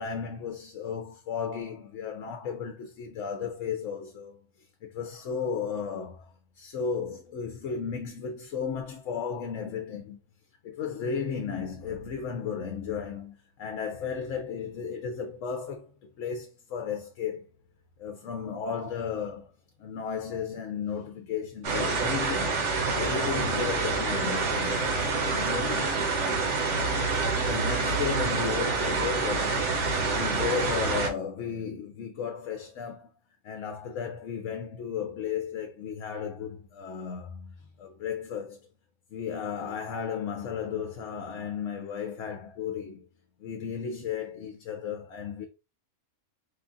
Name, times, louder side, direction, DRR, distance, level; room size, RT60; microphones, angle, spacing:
voice 1, 0.0-4.4 4.8-10.2 10.6-17.4 18.0-19.5 19.8-22.6 22.9-26.0 27.3-33.1 33.4-38.6 39.1-43.1 43.4-45.5, left 6 dB, 70° left, 1.0 m, -34 dB
sound 1, 21.6-31.1, right 4 dB, 60° right, 1.3 m, -27 dB
4.9 x 2.4 x 3.8 m
omnidirectional pair, 1.4 m